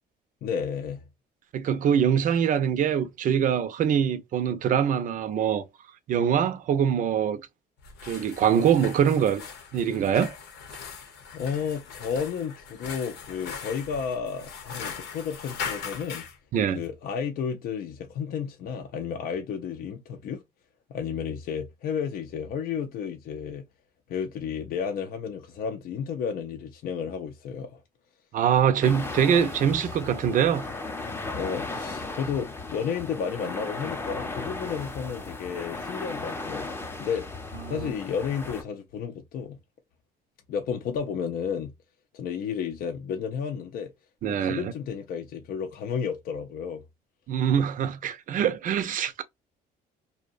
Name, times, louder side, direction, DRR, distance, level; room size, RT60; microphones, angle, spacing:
voice 1, 0.4-1.1 11.3-16.3 16.7-20.4 20.9-23.7 24.1-27.8 31.3-36.7 37.0-37.3 37.7-39.6 40.5-41.7 42.1-43.9 44.3-46.8, left 7 dB, 60° left, 0.5 m, -32 dB
voice 2, 1.5-5.6 6.1-7.4 8.0-9.4 9.7-10.3 16.5-16.8 28.3-30.7 37.7-37.9 44.2-44.7 47.3-49.2, right 8 dB, 50° right, 0.5 m, -24 dB
sound 1, 7.8-16.4, left 6 dB, 85° left, 0.8 m, -40 dB
sound 2, 28.8-38.6, left 3 dB, 15° left, 0.6 m, -36 dB
2.7 x 2.2 x 2.4 m
cardioid pair, 110°, 17 cm